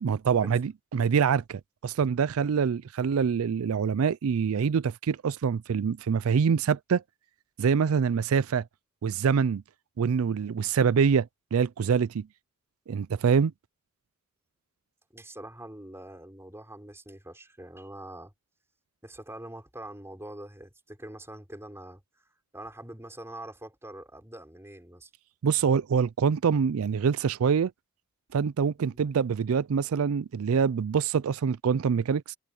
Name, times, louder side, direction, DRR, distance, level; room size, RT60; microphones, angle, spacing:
voice 1, 0.0-7.0 7.6-8.6 9.0-9.6 10.0-12.3 12.9-13.5 25.4-27.7 28.3-32.4, right 6 dB, 70° right, 0.4 m, -25 dB
voice 2, 15.1-18.3 19.0-22.0 22.5-25.1 28.9-29.0, right 1 dB, 10° right, 4.4 m, -44 dB
head